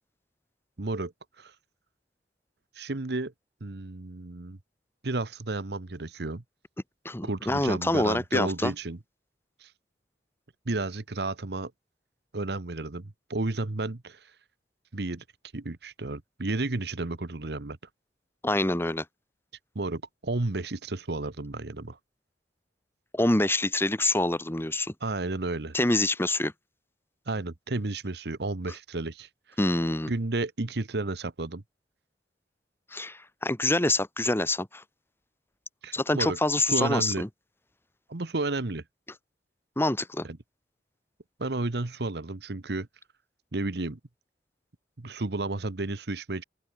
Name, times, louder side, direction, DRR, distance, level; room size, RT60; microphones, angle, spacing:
voice 1, 0.8-1.1 1.4-1.5 2.7-3.3 3.6-4.6 5.0-6.4 7.2-9.0 9.6-9.7 10.6-11.7 12.3-14.3 14.9-15.2 15.5-17.8 19.7-22.0 25.0-25.7 27.3-29.3 30.1-31.6 35.8-37.2 38.1-38.8 40.2-40.4 41.4-42.9 43.5-44.0 45.0-46.4, right 2 dB, 65° right, 1.1 m, -32 dB
voice 2, 7.1-8.7 18.4-19.1 23.1-24.9 25.7-26.5 29.6-30.1 32.9-34.8 35.9-37.3 39.8-40.3, left 1 dB, 15° left, 1.7 m, -26 dB
open air
head